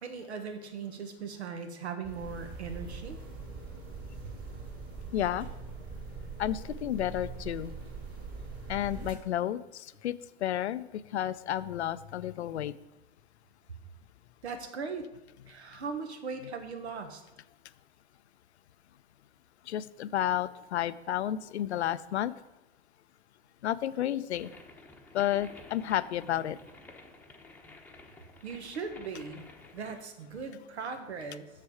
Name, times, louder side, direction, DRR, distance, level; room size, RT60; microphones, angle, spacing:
voice 1, 0.0-3.2 14.4-15.1 15.5-17.2 28.4-29.5 29.7-31.5, right 5 dB, 85° right, 8 dB, 1.3 m, -39 dB
sound 1, 2.0-9.2, right 4 dB, 40° right, 2.5 m, -42 dB
voice 2, 5.1-5.5 6.4-7.7 8.7-10.1 10.4-10.8 11.1-12.7 19.7-22.3 23.6-24.5 25.1-26.6, left 12 dB, 90° left, 15 dB, 0.5 m, -31 dB
sound 2, 24.4-30.0, left 2 dB, 5° left, 0.8 m, -52 dB
6.8 x 6.5 x 4.8 m, 0.96 s
hypercardioid pair, 120°, 32 cm